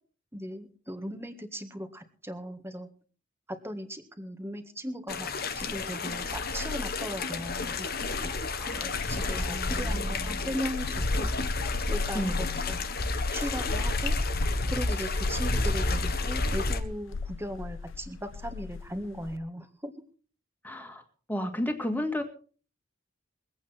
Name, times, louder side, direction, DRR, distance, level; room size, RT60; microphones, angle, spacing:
voice 1, 0.3-2.9 3.5-5.3 5.5-7.9 8.2-8.3 8.7-11.3 11.9-12.8 13.3-14.2 14.7-19.9, equal, 15° right, 7 dB, 1.7 m, -38 dB
sound 1, 5.1-16.8, left 2 dB, 55° left, 1.4 m, -30 dB
sound 2, 5.9-19.4, left 4 dB, 80° left, 0.7 m, -40 dB
voice 2, 9.1-10.6 12.1-12.8 20.6-21.0 21.3-22.2, left 1 dB, 10° left, 5 dB, 2.1 m, -34 dB
23.0 x 8.8 x 4.4 m, 0.41 s
head